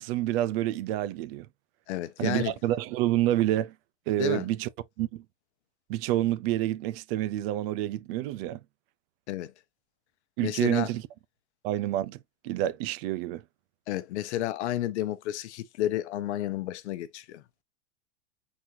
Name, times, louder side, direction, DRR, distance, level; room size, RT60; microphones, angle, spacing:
voice 1, 0.0-1.5 2.2-3.7 4.1-4.7 5.0-5.2 5.9-8.6 10.4-11.0 11.6-12.2 12.4-13.4, right 14 dB, 55° right, 0.6 m, -28 dB
voice 2, 1.9-2.5 4.2-4.5 9.3-9.5 10.4-10.9 13.9-17.4, left 13 dB, 70° left, 0.8 m, -31 dB
4.4 x 4.1 x 2.7 m
hypercardioid pair, 105°, 36 cm